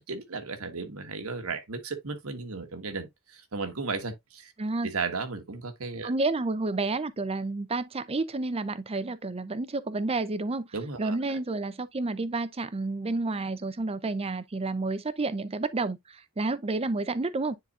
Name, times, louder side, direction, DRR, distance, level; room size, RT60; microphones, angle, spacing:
voice 1, 0.1-4.5 4.8-6.1 10.7-11.4, right 4 dB, 70° right, 1.3 m, -35 dB
voice 2, 4.6-4.9 6.0-10.7 11.0-17.6, right 3 dB, 25° right, 0.6 m, -30 dB
10.0 x 4.0 x 2.4 m
head